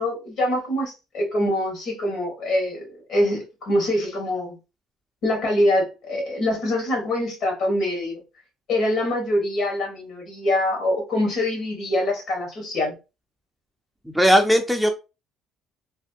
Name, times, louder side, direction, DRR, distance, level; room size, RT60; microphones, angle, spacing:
voice 1, 0.0-4.6 5.2-8.2 8.7-12.9, left 1 dB, 65° left, 1.9 m, -24 dB
voice 2, 14.1-14.9, equal, ahead, 0.5 m, -18 dB
3.3 x 2.7 x 2.7 m
cardioid pair, 100°, 0 cm